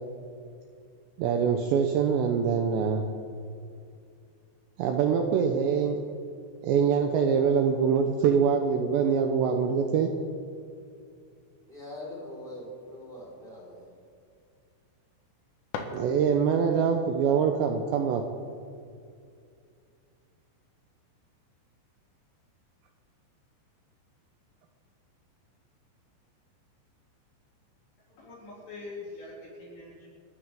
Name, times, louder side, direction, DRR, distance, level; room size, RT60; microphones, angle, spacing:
voice 1, 1.2-3.0 4.8-6.0 6.6-10.1 15.9-18.2, right 6 dB, 80° right, 4 dB, 2.7 m, -24 dB
voice 2, 11.7-13.9, left 1 dB, 10° right, -5 dB, 4.0 m, -42 dB
sound 1, 15.6-16.7, left 5 dB, 75° left, 3.9 m, -40 dB
voice 3, 28.2-30.1, left 3 dB, 60° left, -6 dB, 5.0 m, -43 dB
29.0 x 13.0 x 3.7 m, 2.4 s
omnidirectional pair, 6.0 m